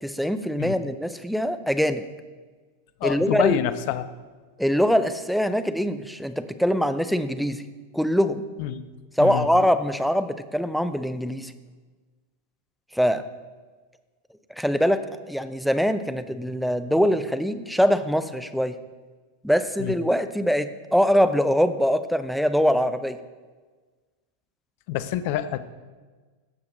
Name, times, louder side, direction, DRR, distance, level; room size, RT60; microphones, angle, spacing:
voice 1, 0.0-2.0 3.0-3.6 4.6-7.6 7.9-8.5 9.2-11.5 12.9-13.2 14.6-18.8 19.4-23.2, equal, ahead, 10 dB, 0.5 m, -23 dB
voice 2, 3.0-4.1 8.6-8.8 9.2-9.5 19.8-19.9 24.9-25.7, left 11 dB, 45° left, 13 dB, 0.5 m, -27 dB
15.0 x 5.8 x 3.9 m, 1.4 s
figure-of-eight pair, 90°, 0 cm